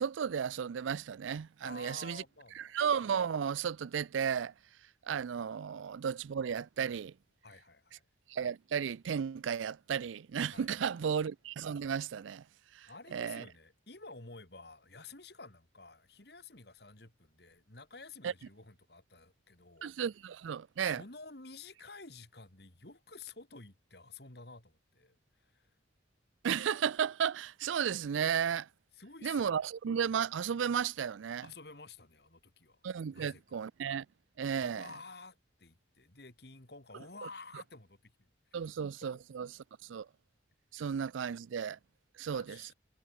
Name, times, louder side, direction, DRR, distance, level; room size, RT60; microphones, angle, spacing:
voice 1, 0.0-2.2 2.6-4.5 5.1-7.1 8.3-12.4 12.7-13.4 18.2-18.3 19.8-21.0 26.4-28.7 29.2-31.5 32.8-34.1 34.4-34.9 38.5-39.5 39.8-40.1 40.7-41.8 42.2-42.7, right 7 dB, 90° right, 0.4 m, -34 dB
voice 2, 1.6-2.7 7.4-8.0 10.5-10.9 12.9-19.9 20.8-25.7 28.9-29.5 31.4-32.8 33.1-33.6 34.6-38.6 42.3-42.7, left 3 dB, 55° left, 2.8 m, -51 dB
head